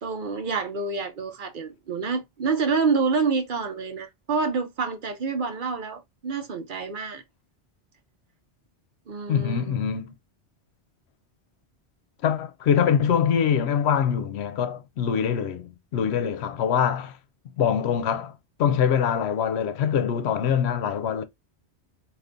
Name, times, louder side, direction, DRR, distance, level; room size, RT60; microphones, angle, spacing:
voice 1, 0.0-7.2 9.1-9.8, right 4 dB, 55° right, 0.8 m, -27 dB
voice 2, 9.3-10.1 12.2-17.2 17.6-18.3 18.6-21.2, left 8 dB, 80° left, 0.8 m, -24 dB
3.6 x 2.5 x 2.5 m
omnidirectional pair, 1.1 m